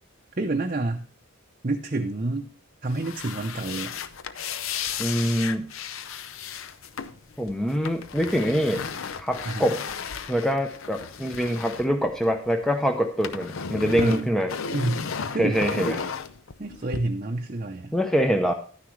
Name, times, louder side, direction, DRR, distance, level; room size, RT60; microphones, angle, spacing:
voice 1, 0.4-1.1 1.6-2.5 2.8-3.9 9.5-9.7 13.9-14.3 14.7-15.1 15.3-15.6 16.6-17.9, right 2 dB, 40° right, 2 dB, 0.7 m, -28 dB
sound 1, 2.9-12.7 12.9-17.0, left 6 dB, 70° left, 0.6 m, -34 dB
voice 2, 5.0-5.7 7.4-8.8 9.2-9.8 10.3-14.6 15.4-16.0 17.9-18.5, equal, ahead, 4 dB, 0.6 m, -24 dB
11.5 x 9.8 x 3.2 m, 0.40 s
head